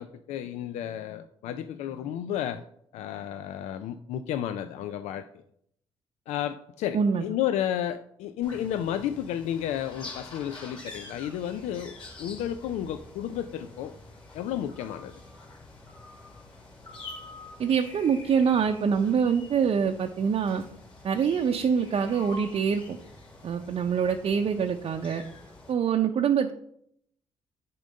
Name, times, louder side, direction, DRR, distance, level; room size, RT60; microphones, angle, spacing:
voice 1, 0.0-2.6 2.9-5.2 6.3-13.9 14.3-15.1, left 10 dB, 85° left, 10 dB, 0.4 m, -32 dB
voice 2, 6.9-7.2 17.6-20.6 21.0-23.0 23.4-25.2 25.7-26.5, right 7 dB, 55° right, 3 dB, 0.6 m, -25 dB
sound 1, 8.4-25.7, left 2 dB, 50° left, 3.2 m, -46 dB
9.0 x 3.8 x 5.2 m, 0.71 s
supercardioid pair, 60°, 11 cm